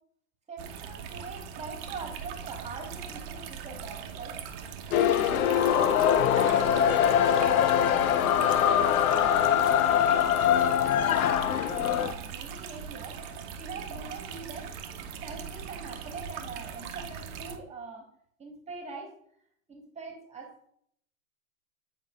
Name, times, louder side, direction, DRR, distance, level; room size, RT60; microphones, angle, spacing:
voice 1, 0.5-4.4 5.0-6.0 6.3-8.4 9.1-13.2 13.6-14.7 15.2-18.1 18.4-19.1 19.7-20.5, right 4 dB, 15° right, 1 dB, 1.3 m, -43 dB
sound 1, 0.6-17.6, right 7 dB, 40° right, 0.8 m, -40 dB
sound 2, 4.9-12.1, left 9 dB, 75° left, 0.5 m, -23 dB
8.8 x 4.6 x 2.4 m, 0.67 s
hypercardioid pair, 110°, 43 cm